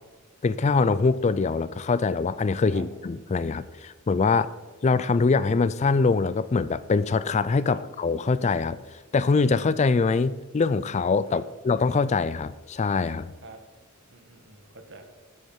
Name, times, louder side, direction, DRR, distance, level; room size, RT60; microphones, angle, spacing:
voice 1, 0.4-4.5 4.8-8.8 9.1-13.3, left 4 dB, 30° left, 16 dB, 0.4 m, -23 dB
voice 2, 14.1-15.0, right 3 dB, 55° right, 6 dB, 1.8 m, -46 dB
12.0 x 7.5 x 5.6 m, 1.3 s
head